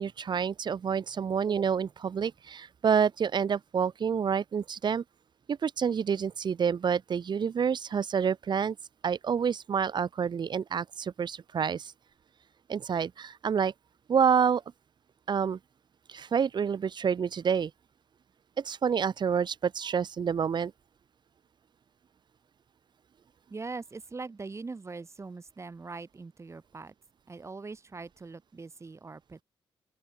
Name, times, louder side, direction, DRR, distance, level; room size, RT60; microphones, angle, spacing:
voice 1, 0.0-5.0 5.5-8.8 9.0-11.9 12.7-13.7 14.1-14.6 15.3-15.6 16.1-17.7 18.6-20.7, right 7 dB, 50° right, 1.2 m, -28 dB
voice 2, 23.5-26.9 27.3-29.4, right 4 dB, 30° right, 2.3 m, -42 dB
open air
cardioid pair, 80°, 10 cm